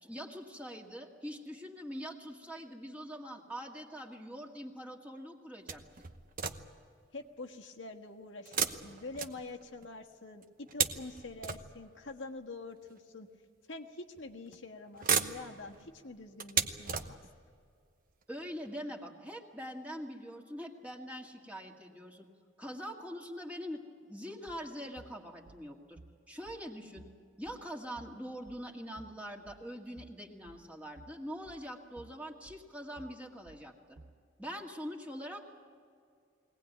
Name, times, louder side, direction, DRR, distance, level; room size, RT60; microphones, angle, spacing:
voice 1, 0.0-5.8 18.3-22.3 22.6-26.0 26.3-27.1 27.4-34.0 34.4-35.5, equal, 10° right, 0 dB, 2.0 m, -43 dB
sound 1, 5.7-6.9 8.5-9.9 10.4-12.1 13.0-13.1 14.2-14.6 14.9-17.5 18.2-18.3 18.7-18.8, right 7 dB, 50° right, 1.0 m, -35 dB
voice 2, 7.1-13.3 13.7-17.2, left 3 dB, 75° left, 2 dB, 1.5 m, -46 dB
sound 2, 24.5-34.3, right 3 dB, 90° right, 0.9 m, -57 dB
22.0 x 18.0 x 9.2 m, 2.2 s
head